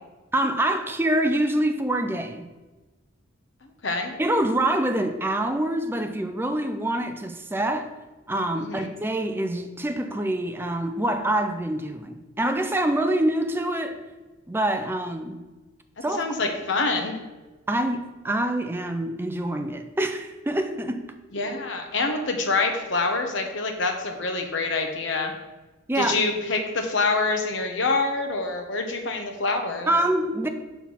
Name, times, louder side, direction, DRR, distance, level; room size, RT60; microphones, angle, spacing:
voice 1, 0.3-2.5 4.2-7.9 8.3-14.0 14.5-15.4 16.0-16.3 17.7-21.1 25.9-26.2 29.9-30.5, right 1 dB, 10° right, 0.5 m, -25 dB
voice 2, 3.8-4.1 8.6-8.9 16.0-17.2 21.3-25.3 26.0-29.9, left 3 dB, 65° left, 1.0 m, -26 dB
5.7 x 4.7 x 5.5 m
head